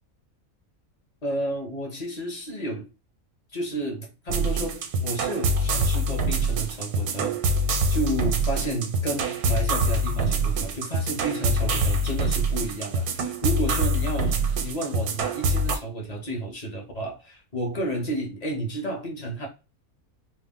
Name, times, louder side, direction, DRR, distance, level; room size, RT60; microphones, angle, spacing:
voice 1, 1.2-2.9 3.5-7.6 7.9-19.5, right 1 dB, 40° left, 0.6 m, -31 dB
sound 1, 4.3-15.8, right 1 dB, 85° right, 1.1 m, -25 dB
2.4 x 2.0 x 3.5 m
omnidirectional pair, 1.5 m